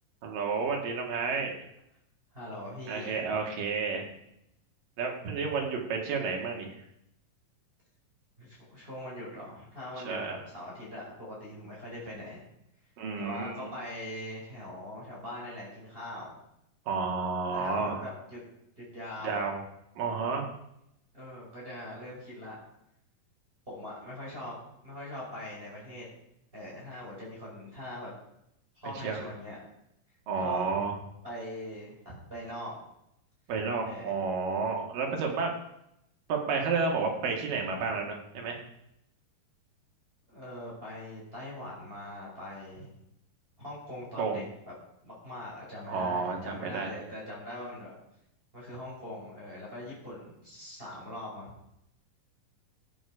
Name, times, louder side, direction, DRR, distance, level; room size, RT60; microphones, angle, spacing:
voice 1, 0.2-1.5 2.9-4.0 5.0-6.8 10.0-10.3 13.0-13.7 16.9-18.0 19.2-19.6 20.0-20.4 29.0-29.2 30.3-30.9 33.5-35.5 36.3-38.6 44.2-44.4 45.9-46.9, right 4 dB, 70° right, 1 dB, 3.6 m, -31 dB
voice 2, 2.3-3.4 8.4-12.4 13.2-16.3 17.5-18.4 18.8-19.4 21.1-22.5 23.7-24.5 24.8-26.1 26.5-28.1 28.7-29.6 30.4-30.7 31.2-32.8 33.8-34.2 37.7-37.8 40.3-42.9 43.6-44.7 45.0-47.9 48.5-51.5, left 1 dB, 15° right, -7 dB, 5.5 m, -42 dB
16.0 x 8.4 x 4.9 m, 0.79 s
omnidirectional pair, 4.1 m